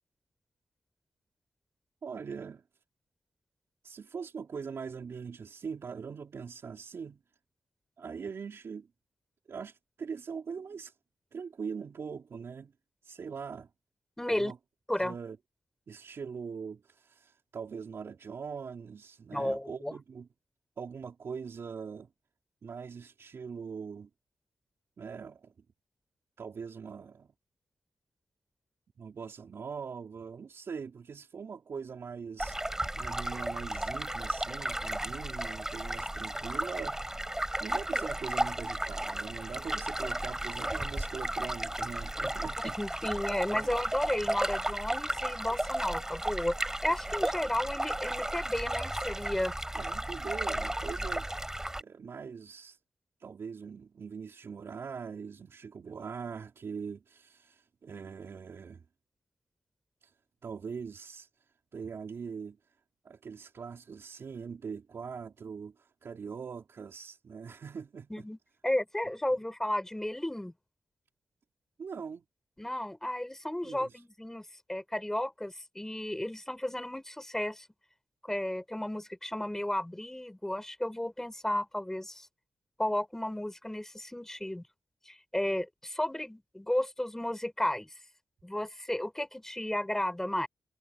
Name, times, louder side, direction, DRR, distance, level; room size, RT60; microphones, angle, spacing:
voice 1, 2.0-2.6 3.8-7.2 8.0-8.9 9.5-10.9 11.3-12.7 13.0-13.7 14.3-14.6 15.0-15.4 15.9-20.3 20.8-22.1 22.6-24.1 25.0-25.5 26.4-27.3 29.0-32.6 32.9-37.3 37.6-43.0 43.5-43.8 49.7-51.5 51.8-52.8 53.2-58.8 60.0-60.1 60.4-61.3 61.7-62.6 63.0-68.3 71.8-72.2 73.6-74.0, right 6 dB, 65° right, 4.1 m, -42 dB
voice 2, 14.2-14.5 14.9-15.1 19.3-19.9 42.8-49.5 68.1-68.4 68.6-70.5 72.6-77.7 78.2-82.3 82.8-84.6 85.1-87.9 88.4-90.5, left 1 dB, 10° left, 4.9 m, -33 dB
sound 1, 32.4-51.8, right 1 dB, 10° right, 7.7 m, -34 dB
wide cardioid pair, 95°, 5 cm